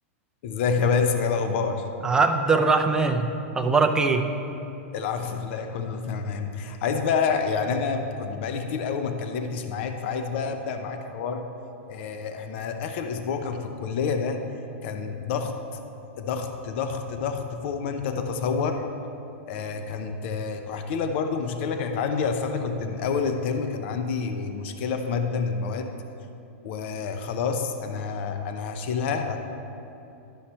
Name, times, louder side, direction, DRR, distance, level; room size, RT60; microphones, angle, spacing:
voice 1, 0.4-1.9 4.9-11.5 11.9-14.5 14.8-15.8 16.2-18.9 19.5-26.0 26.6-29.4, left 5 dB, 55° left, 6 dB, 0.6 m, -28 dB
voice 2, 2.0-4.3, right 4 dB, 10° right, 4 dB, 0.5 m, -22 dB
11.5 x 5.7 x 4.3 m, 2.8 s
hypercardioid pair, 145°, 7 cm